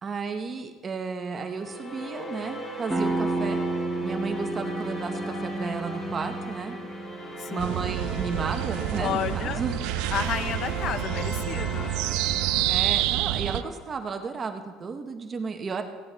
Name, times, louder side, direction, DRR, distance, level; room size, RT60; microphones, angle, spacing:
voice 1, 0.0-3.6 4.0-6.8 7.5-9.8 12.7-15.8, right 4 dB, 25° right, 6 dB, 0.9 m, -33 dB
sound 1, 1.4-13.8, equal, 30° left, 3.4 m, -38 dB
sound 2, 2.9-8.3, right 2 dB, 10° right, 1.2 m, -32 dB
sound 3, 7.6-13.6, right 14 dB, 75° right, 0.4 m, -28 dB
voice 2, 9.0-9.6 10.1-11.9, left 8 dB, 45° left, 13 dB, 0.6 m, -31 dB
16.0 x 10.5 x 3.4 m, 1.5 s
cardioid pair, 140°, 0 cm